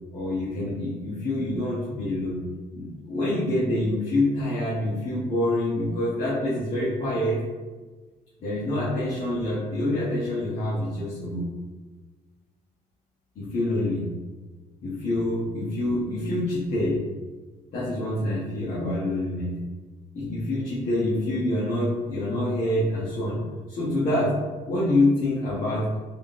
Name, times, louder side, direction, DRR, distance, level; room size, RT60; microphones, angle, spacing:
voice 1, 0.1-2.4 2.7-7.4 8.4-11.5 13.3-14.1 14.8-17.0 17.7-19.6 20.1-23.4 23.7-24.4 24.7-25.9, left 1 dB, 50° left, -9 dB, 1.0 m, -26 dB
3.6 x 2.7 x 2.5 m, 1.3 s
cardioid pair, 110°, 17 cm